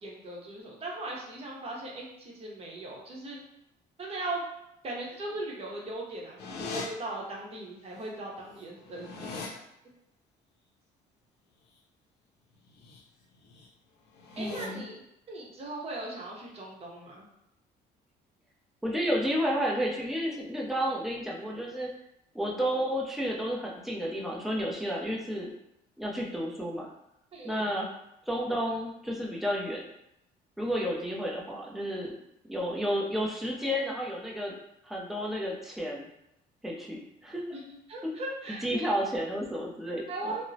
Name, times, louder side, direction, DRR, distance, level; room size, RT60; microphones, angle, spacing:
voice 1, 0.0-3.4 4.0-4.4 4.8-9.6 14.4-15.0 15.3-17.3 27.3-27.7 37.5-37.6 37.9-38.9 40.1-40.5, right 2 dB, 35° right, -3 dB, 0.8 m, -38 dB
sound 1, 6.4-6.9 8.0-8.1 8.4-9.5 12.7-13.0 13.4-13.7 14.1-14.7, left 4 dB, 75° left, 0.5 m, -40 dB
voice 2, 14.4-14.8 18.8-21.9 22.3-25.5 26.0-26.9 27.4-27.9 28.3-29.8 30.6-32.1 32.5-34.5 34.8-36.1 36.6-37.4 38.0-38.1 38.6-40.3, equal, ahead, -3 dB, 0.5 m, -31 dB
2.8 x 2.0 x 2.6 m, 0.83 s
cardioid pair, 110°, 17 cm